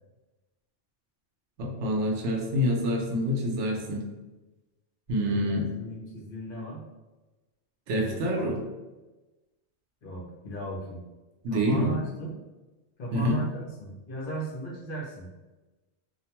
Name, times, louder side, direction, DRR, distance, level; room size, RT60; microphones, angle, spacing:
voice 1, 1.6-4.1 5.1-5.7 7.9-8.6 11.4-12.0 13.1-13.4, equal, 90° right, 0 dB, 0.9 m, -26 dB
voice 2, 5.2-6.8 7.9-8.5 10.0-11.0 11.5-12.3 13.0-15.3, right 2 dB, 55° left, -3 dB, 0.7 m, -37 dB
2.5 x 2.1 x 2.8 m, 1.1 s
omnidirectional pair, 1.2 m